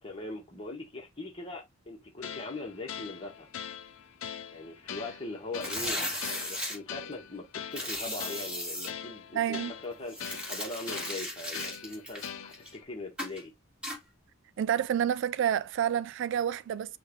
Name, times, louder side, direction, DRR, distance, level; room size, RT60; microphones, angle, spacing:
voice 1, 0.0-3.5 4.5-13.5, left 2 dB, 25° left, 1.4 m, -41 dB
sound 1, 2.2-12.8, left 8 dB, 85° left, 0.5 m, -43 dB
sound 2, 5.5-6.8 7.7-8.9 10.1-12.8 13.2-13.4 13.8-14.0, left 1 dB, 5° right, 2.1 m, -36 dB
voice 2, 9.3-9.7 14.6-17.0, right 9 dB, 65° right, 0.3 m, -29 dB
5.7 x 2.6 x 3.1 m
head